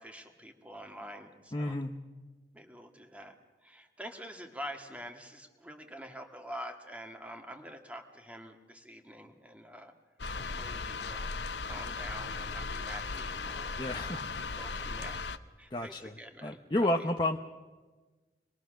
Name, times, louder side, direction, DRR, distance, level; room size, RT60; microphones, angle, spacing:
voice 1, 0.0-1.8 2.5-9.9 10.3-15.3 15.6-17.1, equal, 10° right, 4 dB, 1.8 m, -46 dB
voice 2, 1.5-1.9 13.8-14.3 15.7-16.1 16.4-17.4, left 1 dB, 25° left, 3 dB, 0.8 m, -31 dB
sound 1, 10.2-15.4, left 4 dB, 85° left, 0.9 m, -37 dB
26.0 x 21.5 x 6.4 m, 1.3 s
head